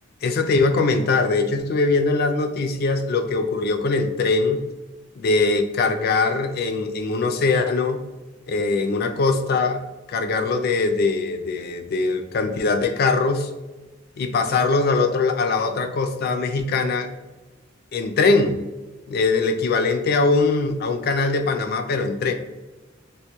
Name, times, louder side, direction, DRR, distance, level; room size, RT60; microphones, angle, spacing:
voice 1, 0.2-4.6 5.2-8.0 8.5-9.8 10.1-13.5 14.2-17.1 17.9-18.6 19.1-22.3, left 3 dB, 50° left, 6 dB, 0.3 m, -21 dB
3.4 x 2.5 x 2.9 m, 1.1 s
head